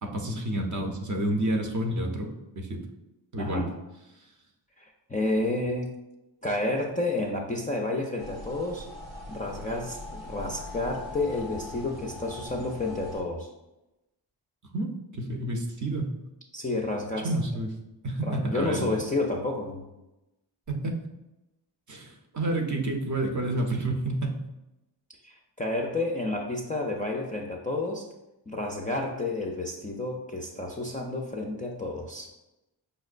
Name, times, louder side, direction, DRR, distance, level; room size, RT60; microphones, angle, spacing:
voice 1, 0.0-2.8 3.3-3.6 14.7-16.1 17.2-17.7 18.0-18.9 20.7-21.0 21.9-24.4, right 1 dB, 40° right, 2 dB, 0.6 m, -29 dB
voice 2, 3.4-3.7 4.8-5.9 6.4-8.9 9.3-13.5 16.5-17.3 18.2-19.8 25.2-28.1 28.5-32.3, left 2 dB, 20° left, 0 dB, 0.4 m, -30 dB
sound 1, 8.2-13.2, left 1 dB, 65° right, 0.9 m, -41 dB
5.2 x 2.0 x 2.4 m, 0.96 s
cardioid pair, 50°, 47 cm